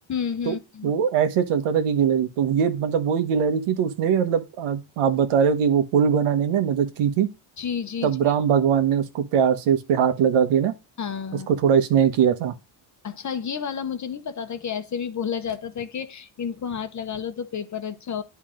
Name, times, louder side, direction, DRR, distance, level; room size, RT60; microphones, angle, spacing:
voice 1, 0.1-0.9 7.6-8.3 11.0-11.5 13.0-18.2, left 7 dB, 35° left, 0.9 m, -31 dB
voice 2, 0.8-7.3 8.0-10.7 11.6-12.5, right 8 dB, 90° right, 1.3 m, -21 dB
10.5 x 3.7 x 3.7 m
cardioid pair, 110°, 49 cm